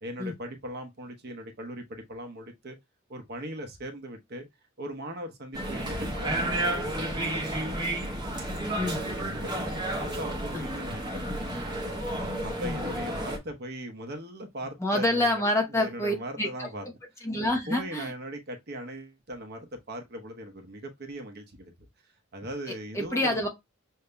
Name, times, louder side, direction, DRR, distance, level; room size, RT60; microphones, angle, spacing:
voice 1, 0.0-2.8 3.1-4.5 4.8-7.8 8.9-11.8 12.4-15.4 15.7-16.9 17.7-21.7 22.3-23.5, equal, 50° right, 0.9 m, -39 dB
sound 1, 5.5-13.4, right 1 dB, 20° right, 0.9 m, -31 dB
voice 2, 14.8-16.7 17.2-18.1 22.9-23.5, left 1 dB, 15° left, 0.8 m, -27 dB
6.6 x 2.8 x 2.2 m
head